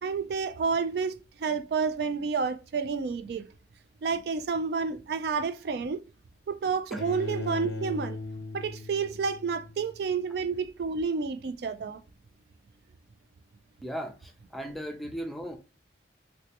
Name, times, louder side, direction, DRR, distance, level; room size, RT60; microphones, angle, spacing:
voice 1, 0.0-3.5 4.0-6.0 6.5-8.2 8.5-12.0, right 5 dB, 65° right, 0.3 m, -30 dB
Bowed string instrument, 7.0-10.0, left 2 dB, 80° left, 0.4 m, -38 dB
voice 2, 13.8-15.6, equal, ahead, 0.5 m, -37 dB
3.1 x 3.1 x 2.8 m
head